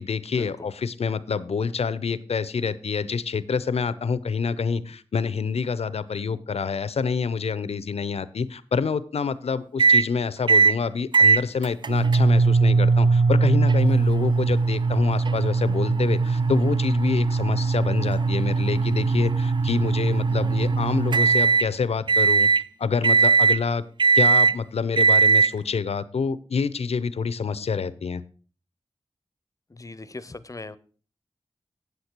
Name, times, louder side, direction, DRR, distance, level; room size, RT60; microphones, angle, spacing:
voice 1, 0.0-22.5 22.8-23.8 24.1-28.2, left 5 dB, 80° left, 0.6 m, -27 dB
sound 1, 9.8-10.1 10.5-10.8 11.1-21.7 22.1-22.6 23.0-23.6 24.0-24.6 25.0-25.5, right 4 dB, 45° right, 0.4 m, -20 dB
voice 2, 29.7-30.8, left 2 dB, 30° left, 0.7 m, -39 dB
8.1 x 7.9 x 4.4 m
cardioid pair, 45°, 11 cm